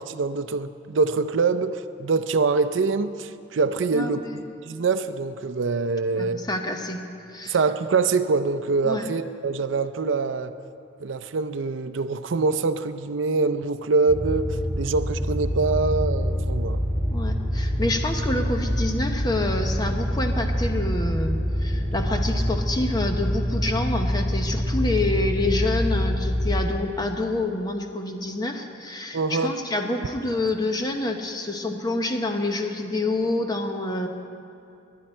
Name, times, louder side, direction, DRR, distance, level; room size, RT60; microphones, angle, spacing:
voice 1, 0.0-4.2 4.7-6.4 7.4-10.5 11.0-14.5 14.8-16.8 29.1-29.5, right 4 dB, 75° right, 11 dB, 0.5 m, -24 dB
voice 2, 3.9-4.4 6.2-7.0 7.3-7.6 8.8-9.0 17.1-34.1, left 2 dB, 20° left, 4 dB, 0.9 m, -27 dB
sound 1, 14.1-26.6, equal, 10° right, 4.4 m, -26 dB
20.0 x 11.0 x 4.4 m, 2.6 s
head